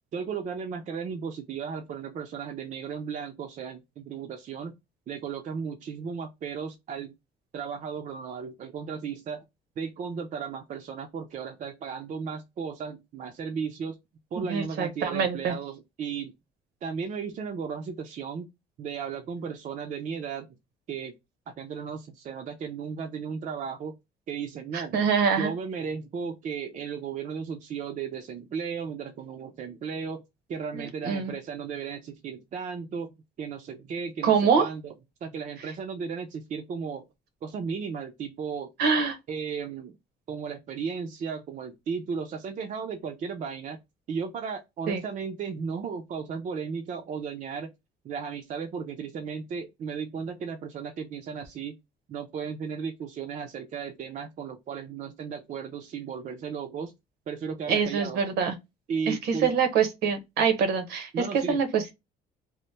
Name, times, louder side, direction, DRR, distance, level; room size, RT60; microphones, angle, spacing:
voice 1, 0.1-4.8 5.1-7.1 7.5-9.4 9.8-13.9 14.3-16.3 16.8-18.5 18.8-20.5 20.9-21.1 21.6-23.9 24.3-24.9 25.4-30.2 30.5-34.9 35.2-37.0 37.4-38.7 39.3-40.0 40.3-43.8 44.1-47.7 48.0-51.8 52.1-56.9 57.3-58.2 58.9-59.5 61.1-61.6, right 6 dB, 45° right, 0.5 m, -35 dB
voice 2, 14.4-15.5 24.7-25.5 30.7-31.3 34.2-34.7 38.8-39.2 44.9-45.0 57.7-58.5 59.1-61.9, right 6 dB, 75° right, 0.9 m, -25 dB
3.0 x 2.1 x 3.2 m
cardioid pair, 110°, 17 cm